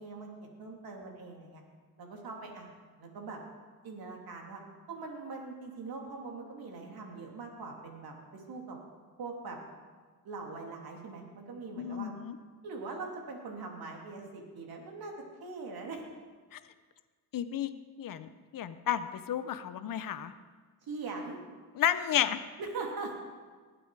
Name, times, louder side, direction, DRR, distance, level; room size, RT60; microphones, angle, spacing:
voice 1, 0.0-1.6 2.0-2.7 3.0-3.4 3.8-4.6 4.9-8.8 9.2-9.6 10.2-12.1 12.6-15.1 15.4-16.0 20.8-21.4 22.6-23.2, right 3 dB, 65° right, 1 dB, 2.9 m, -42 dB
voice 2, 11.8-12.3 16.5-16.6 17.3-17.7 18.0-20.3 21.8-22.4, left 10 dB, 55° left, 12 dB, 0.8 m, -32 dB
19.0 x 8.0 x 4.8 m, 1.5 s
cardioid pair, 85°, 39 cm